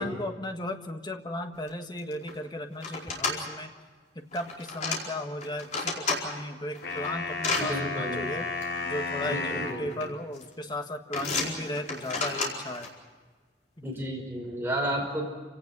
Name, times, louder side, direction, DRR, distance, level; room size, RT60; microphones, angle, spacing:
voice 1, 0.0-3.7 4.1-8.5 8.8-12.9 13.8-14.1, left 1 dB, 25° left, 5 dB, 1.6 m, -36 dB
sound 1, 1.7-1.8 2.0-2.3 2.8-3.4 4.3-5.0 5.4-6.2 6.7-7.6 8.6-8.7 9.7-10.1 10.4-10.7 11.1-12.9, left 4 dB, 45° left, 4.7 m, -31 dB
sound 2, 6.8-9.8, left 3 dB, 75° left, 4.6 m, -33 dB
voice 2, 7.6-8.3 9.2-10.0 13.8-15.2, right 1 dB, 15° right, -1 dB, 5.4 m, -32 dB
28.5 x 18.0 x 6.1 m, 1.4 s
head